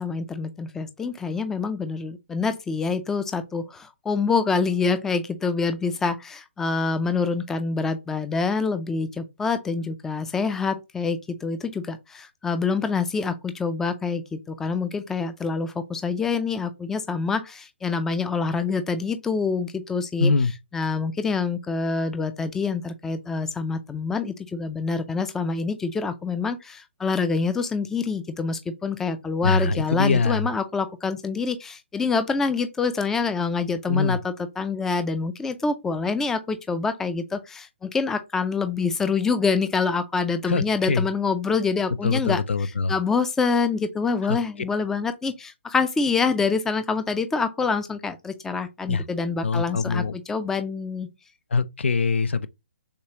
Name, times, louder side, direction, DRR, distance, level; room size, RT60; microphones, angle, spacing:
voice 1, 0.0-20.3 20.7-51.1, left 4 dB, 5° left, 0.4 m, -26 dB
voice 2, 20.2-20.5 29.4-30.4 33.9-34.2 40.5-41.1 42.0-42.9 44.2-44.4 48.9-49.0 49.4-50.1 51.5-52.5, left 4 dB, 75° left, 0.5 m, -23 dB
6.6 x 2.4 x 2.8 m
hypercardioid pair, 140°, 6 cm